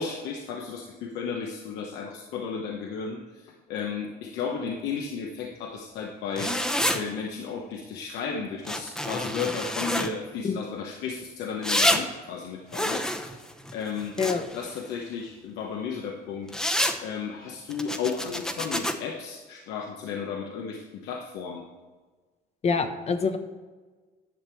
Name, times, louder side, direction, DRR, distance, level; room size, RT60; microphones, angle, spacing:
voice 1, 0.0-6.6 6.9-13.4 13.7-14.2 14.5-16.5 17.0-21.6, left 6 dB, 90° left, 1 dB, 1.0 m, -34 dB
sound 1, 6.4-7.0 8.6-10.1 11.6-12.0 12.7-14.6 16.5-17.0 17.7-18.9, left 1 dB, 5° left, 0.8 m, -27 dB
voice 2, 22.6-23.4, left 5 dB, 40° left, 8 dB, 1.0 m, -25 dB
10.5 x 6.8 x 4.5 m, 1.3 s
cardioid pair, 110°, 17 cm